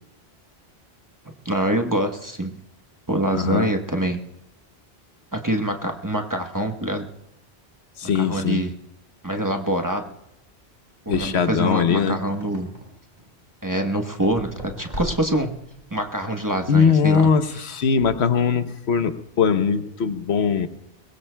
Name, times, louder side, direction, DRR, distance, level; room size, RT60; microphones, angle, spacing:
voice 1, 1.4-2.5 3.1-4.2 5.3-7.1 8.1-8.7 9.2-10.1 11.1-12.7 13.6-15.5 15.9-17.8, right 1 dB, 20° right, 3 dB, 1.0 m, -25 dB
voice 2, 3.3-3.7 8.0-8.6 11.1-12.2 16.7-20.7, left 6 dB, 90° left, 10 dB, 1.1 m, -21 dB
sound 1, 10.3-10.4 11.1-13.4 14.2-16.1, equal, 45° right, 4.4 m, -38 dB
22.5 x 21.0 x 2.2 m, 0.83 s
omnidirectional pair, 1.1 m